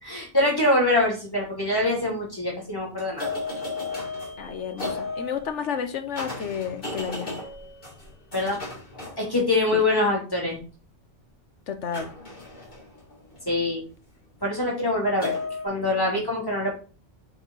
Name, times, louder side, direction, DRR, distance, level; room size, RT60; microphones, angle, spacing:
voice 1, 0.0-3.3 8.3-8.6 9.2-10.6 13.5-13.8 14.4-15.3 15.6-16.7, left 2 dB, 20° left, -2 dB, 3.0 m, -24 dB
sound 1, 1.8-2.1 3.0-9.9 11.9-13.9 15.2-15.7, left 3 dB, 50° left, 3.8 m, -35 dB
voice 2, 4.4-7.4 9.7-9.8 11.7-12.1, left 7 dB, 80° left, 8 dB, 1.3 m, -31 dB
8.5 x 4.6 x 4.0 m, 0.35 s
omnidirectional pair, 1.2 m